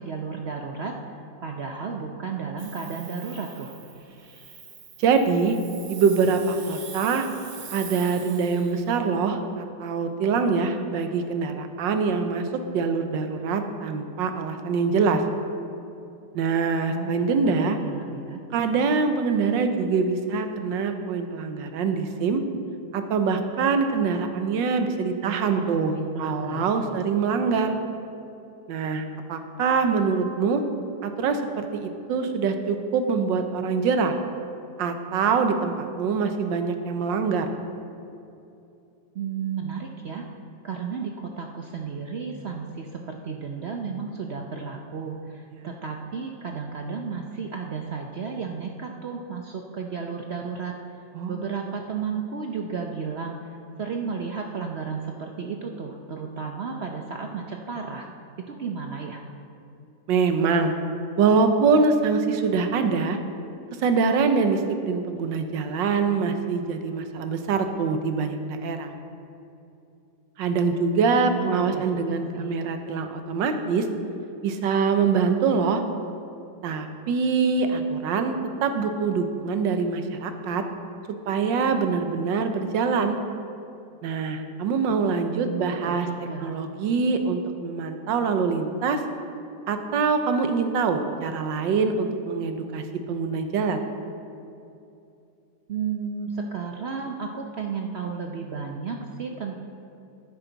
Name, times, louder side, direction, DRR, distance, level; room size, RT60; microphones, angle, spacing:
voice 1, 0.0-3.7 16.9-18.4 25.2-27.0 39.1-40.3 40.6-50.7 51.3-58.1 58.4-59.2 71.2-72.6 85.3-86.5 95.7-99.6, right 5 dB, 70° right, 2 dB, 0.6 m, -33 dB
Hiss, 2.6-8.9, right 6 dB, 45° right, 1.0 m, -43 dB
voice 2, 5.0-5.6 5.9-7.3 7.7-12.5 12.7-15.2 16.3-17.8 18.5-22.4 22.9-25.9 26.2-27.8 28.7-30.6 31.0-34.1 34.8-37.5 45.5-45.7 51.1-51.7 60.1-60.7 61.2-63.2 63.8-68.9 70.4-73.9 74.4-75.8 76.6-80.6 81.3-83.2 84.0-86.1 86.4-89.0 89.7-93.8, right 5 dB, 90° right, 7 dB, 1.5 m, -24 dB
12.5 x 10.5 x 3.9 m, 2.7 s
omnidirectional pair, 1.9 m